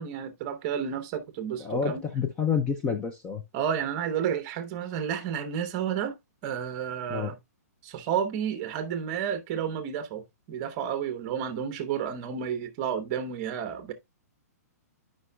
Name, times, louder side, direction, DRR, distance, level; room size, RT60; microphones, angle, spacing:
voice 1, 0.0-2.0 3.5-6.1 6.4-7.4 7.8-13.9, right 8 dB, 30° right, 0.8 m, -31 dB
voice 2, 1.6-3.4 7.1-7.3, left 6 dB, 10° left, 0.4 m, -28 dB
11.0 x 5.2 x 2.2 m
hypercardioid pair, 165°, 9 cm